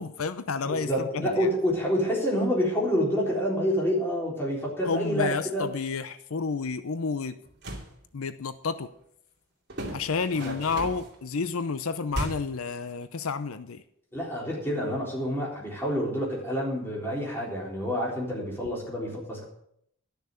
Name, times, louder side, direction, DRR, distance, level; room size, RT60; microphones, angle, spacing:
voice 1, 0.0-1.5 4.8-7.4 8.1-8.9 9.9-13.8, left 5 dB, 80° left, 0.7 m, -30 dB
voice 2, 0.7-5.6 10.3-10.6 14.1-19.5, equal, 10° left, 3.9 m, -28 dB
sound 1, 7.4-7.9 9.7-11.2 12.1-12.6, right 1 dB, 55° right, 2.6 m, -35 dB
12.5 x 6.6 x 7.9 m
head